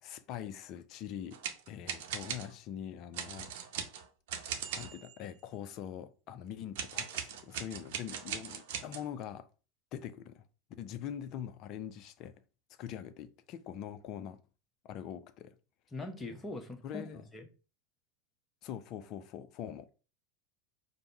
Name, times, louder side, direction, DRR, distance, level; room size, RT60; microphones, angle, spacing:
voice 1, 0.0-1.4 1.7-3.5 4.8-9.5 9.9-10.4 10.8-12.3 12.8-14.4 14.8-15.6 16.8-17.2 18.6-19.9, left 9 dB, 45° left, 0.5 m, -43 dB
sound 1, 1.3-2.5 3.1-5.1 6.7-9.1, right 8 dB, 60° right, 0.7 m, -39 dB
voice 2, 15.9-17.5, left 2 dB, 15° left, 1.0 m, -42 dB
5.2 x 2.1 x 4.5 m
figure-of-eight pair, 80°, 0 cm